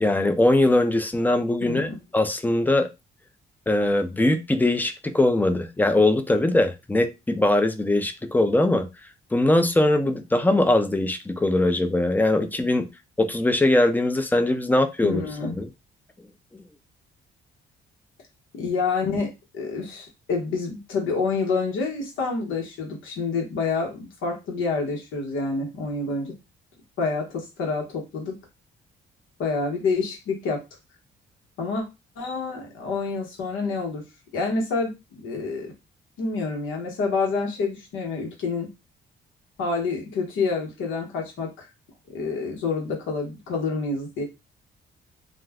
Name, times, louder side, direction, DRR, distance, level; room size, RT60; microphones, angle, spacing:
voice 1, 0.0-2.9 3.7-8.9 9.3-12.9 13.2-15.2 15.5-15.7 16.5-16.6, left 1 dB, 10° left, 9 dB, 0.4 m, -21 dB
voice 2, 1.6-2.0 15.0-15.5 18.5-26.3 27.0-28.4 29.4-30.6 31.6-31.8 32.2-34.0 34.3-35.7 36.2-38.7 39.6-41.7 42.1-44.2, left 4 dB, 80° left, 1 dB, 1.0 m, -28 dB
2.4 x 2.1 x 3.4 m, 0.25 s
cardioid pair, 90°, 20 cm